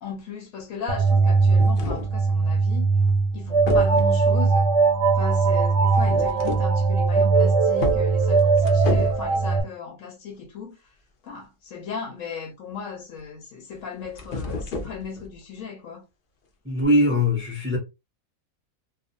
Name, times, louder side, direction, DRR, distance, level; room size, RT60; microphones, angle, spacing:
voice 1, 0.0-2.9 3.3-4.7 5.1-10.8 11.2-16.1, left 6 dB, 70° left, 1.0 m, -36 dB
sound 1, 0.9-2.2 3.1-3.3 3.7-4.3 5.9-6.8 7.2-7.3 7.8-9.3 13.8-15.3 16.8-16.9, left 3 dB, 55° left, 0.6 m, -32 dB
sound 2, 0.9-9.6, right 4 dB, 65° right, 0.7 m, -20 dB
voice 2, 16.7-17.8, left 1 dB, 20° right, 0.3 m, -21 dB
2.5 x 2.2 x 2.6 m
omnidirectional pair, 1.5 m